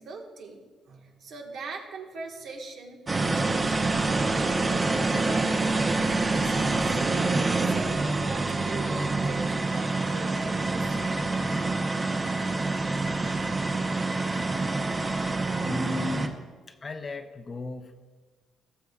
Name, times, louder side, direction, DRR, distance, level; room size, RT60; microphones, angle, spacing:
voice 1, 0.0-5.5 5.9-7.0 7.6-11.3, right 3 dB, 75° right, 1 dB, 1.5 m, -41 dB
sound 1, 3.1-16.3, right 3 dB, 30° right, 0.8 m, -26 dB
voice 2, 15.6-16.4 16.7-18.0, left 3 dB, 35° left, 8 dB, 0.7 m, -35 dB
18.0 x 6.9 x 2.4 m, 1.4 s
cardioid pair, 90°, 0 cm